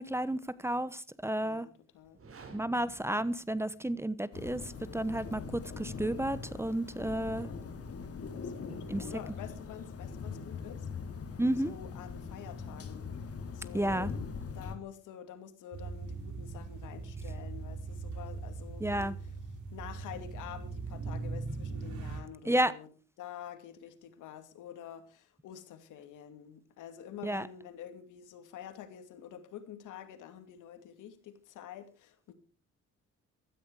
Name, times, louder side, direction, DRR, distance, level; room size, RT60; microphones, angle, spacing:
voice 1, 0.0-1.7 2.5-4.6 4.9-7.5 8.9-9.0 11.4-11.7 13.7-14.1 18.8-19.1 22.4-22.7 27.2-27.4, right 1 dB, 10° right, 17 dB, 0.9 m, -31 dB
voice 2, 1.4-2.2 2.6-2.8 7.3-7.6 8.4-10.9 11.6-13.1 13.5-14.1 14.5-19.4 19.7-22.9 23.2-32.3, left 10 dB, 85° left, 9 dB, 2.5 m, -48 dB
sound 1, 2.0-4.1, right 4 dB, 45° right, 4.6 m, -54 dB
sound 2, 4.3-14.8, left 5 dB, 50° left, 3.2 m, -42 dB
sound 3, 15.7-22.2, right 4 dB, 70° right, 5.2 m, -40 dB
16.0 x 13.5 x 4.8 m, 0.37 s
cardioid pair, 90°, 30 cm